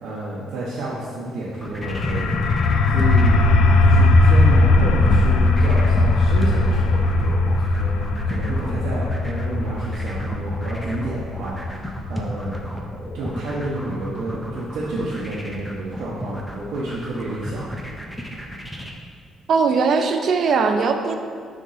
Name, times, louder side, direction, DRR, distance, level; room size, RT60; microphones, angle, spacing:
voice 1, 0.0-12.8 13.1-17.7, right 1 dB, 80° right, -7 dB, 1.0 m, -30 dB
sound 1, 1.5-18.9, equal, ahead, 0.6 m, -33 dB
sound 2, 1.8-13.3, left 2 dB, 80° left, 0.5 m, -19 dB
voice 2, 19.5-21.1, right 5 dB, 50° right, 6 dB, 0.5 m, -19 dB
5.3 x 3.7 x 5.5 m, 2.2 s
cardioid pair, 150°, 0 cm